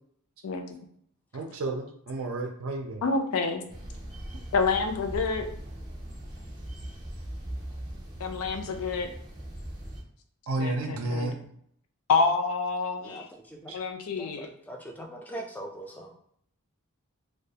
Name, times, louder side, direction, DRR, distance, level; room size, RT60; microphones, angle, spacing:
voice 1, 1.3-3.0 10.5-11.3 13.7-13.8, right 2 dB, 65° right, 3 dB, 0.4 m, -31 dB
voice 2, 3.0-3.6 4.5-5.5 8.2-9.1 10.6-11.3 12.1-13.2 13.7-14.5, left 4 dB, 75° left, 5 dB, 0.4 m, -27 dB
sound 1, 3.7-10.0, right 1 dB, 20° right, 0.6 m, -40 dB
voice 3, 13.0-13.7 14.2-16.1, right 1 dB, 5° left, 1 dB, 0.3 m, -41 dB
2.3 x 2.2 x 2.7 m, 0.67 s
head